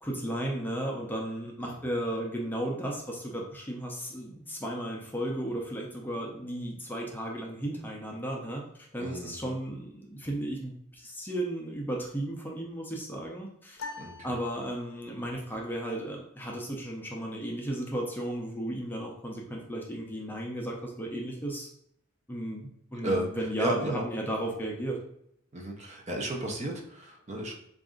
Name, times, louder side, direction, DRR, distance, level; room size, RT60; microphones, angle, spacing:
voice 1, 0.0-13.8 14.2-21.7 22.3-25.0, right 1 dB, 10° left, -1 dB, 0.5 m, -34 dB
voice 2, 9.0-9.6 14.0-14.1 23.0-23.3 23.6-24.1 25.5-27.5, right 1 dB, 35° right, 1 dB, 0.6 m, -33 dB
sound 1, 13.8-15.3, left 3 dB, 80° left, 0.5 m, -44 dB
4.0 x 2.5 x 3.7 m, 0.71 s
head